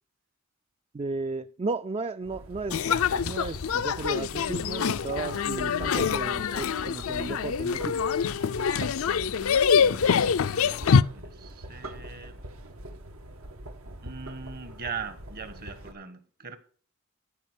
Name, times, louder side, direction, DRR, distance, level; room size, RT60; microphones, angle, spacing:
voice 1, 0.9-7.9, right 3 dB, 30° right, 0.4 m, -34 dB
sound 1, 2.2-15.9, right 1 dB, 80° right, 1.5 m, -43 dB
sound 2, 2.7-11.0, left 6 dB, 75° left, 0.5 m, -25 dB
voice 2, 9.7-12.4 14.0-16.6, right 5 dB, 50° right, 1.4 m, -41 dB
15.0 x 5.1 x 6.2 m
head